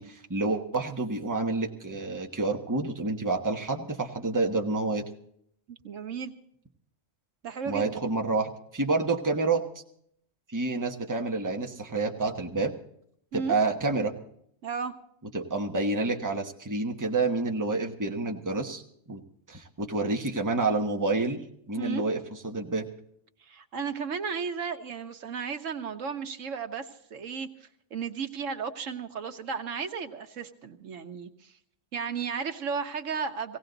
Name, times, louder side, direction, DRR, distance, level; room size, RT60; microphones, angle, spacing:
voice 1, 0.0-5.0 7.7-9.6 10.5-12.7 13.3-14.1 15.3-18.8 19.1-19.2 19.5-21.4 21.7-22.9, right 3 dB, 15° right, 2 dB, 1.2 m, -28 dB
voice 2, 5.7-6.3 7.4-8.0 13.3-13.6 14.6-14.9 21.8-22.0 23.4-31.5 31.9-33.6, right 6 dB, 90° right, 7 dB, 1.4 m, -34 dB
17.5 x 17.0 x 4.0 m, 0.70 s
omnidirectional pair, 1.3 m